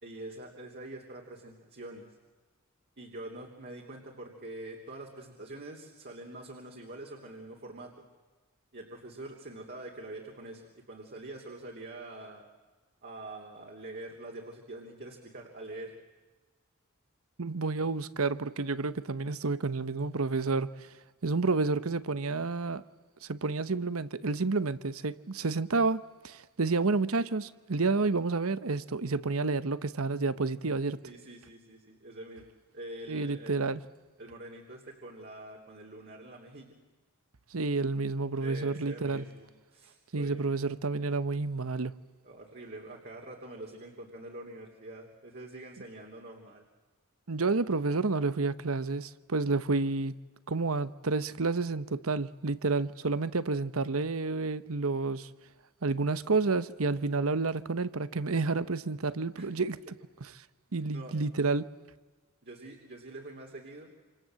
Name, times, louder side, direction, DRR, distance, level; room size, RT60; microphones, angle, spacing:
voice 1, 0.0-2.1 3.0-8.1 8.7-12.5 13.0-15.9 31.0-32.4 32.7-33.5 34.2-36.7 38.4-40.4 42.2-46.6 59.3-59.5 60.9-61.1 62.4-63.9, right 1 dB, 50° right, 3.2 m, -45 dB
voice 2, 17.4-20.9 21.2-22.8 23.2-31.0 33.1-33.8 37.5-39.2 40.1-42.0 47.3-50.1 50.5-55.3 55.8-59.8 60.7-61.7, right 3 dB, 70° right, 1.0 m, -30 dB
27.5 x 27.5 x 7.7 m
head